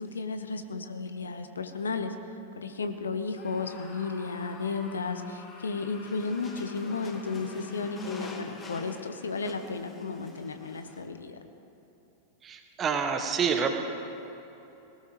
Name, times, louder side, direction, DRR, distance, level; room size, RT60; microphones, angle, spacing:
voice 1, 0.0-2.1 2.6-11.4, left 4 dB, 70° left, 8 dB, 0.9 m, -33 dB
Screaming, 3.3-9.8, left 2 dB, 35° left, 3.5 m, -50 dB
sound 1, 5.9-11.1, left 2 dB, 20° left, 1.3 m, -44 dB
voice 2, 12.4-13.7, right 6 dB, 25° right, 6 dB, 1.3 m, -27 dB
19.5 x 18.0 x 3.2 m, 3.0 s
figure-of-eight pair, 90°, 0 cm